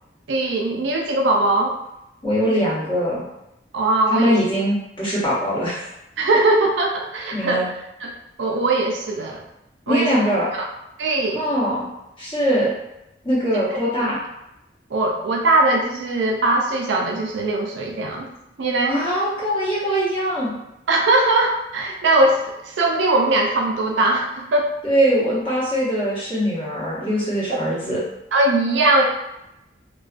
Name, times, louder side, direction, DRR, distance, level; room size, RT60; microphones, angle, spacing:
voice 1, 0.3-1.7 3.7-4.4 6.2-7.6 8.0-8.1 8.4-9.4 9.9-10.1 10.6-10.7 11.0-11.5 13.7-13.8 14.9-18.3 18.6-19.0 20.9-24.7 27.5-27.6 28.3-29.0, right 2 dB, 85° right, 1 dB, 0.4 m, -20 dB
voice 2, 2.2-3.3 4.1-5.9 7.3-7.7 9.9-10.5 11.3-11.9 12.2-12.7 13.2-14.2 18.9-20.5 24.8-28.0, equal, 30° left, -8 dB, 0.9 m, -22 dB
2.4 x 2.2 x 2.4 m, 0.87 s
head